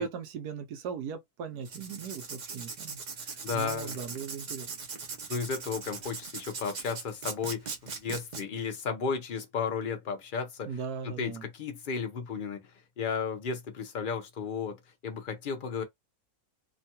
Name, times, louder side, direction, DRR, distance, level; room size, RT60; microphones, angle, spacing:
voice 1, 0.0-4.7 10.7-11.5, right 6 dB, 80° right, 1.2 m, -38 dB
Writing, 1.6-8.4, right 5 dB, 60° right, 0.4 m, -40 dB
voice 2, 3.4-3.9 5.3-10.7 11.0-12.7 13.0-14.8 15.0-15.8, left 5 dB, 60° left, 0.5 m, -34 dB
3.0 x 2.2 x 2.8 m
omnidirectional pair, 1.7 m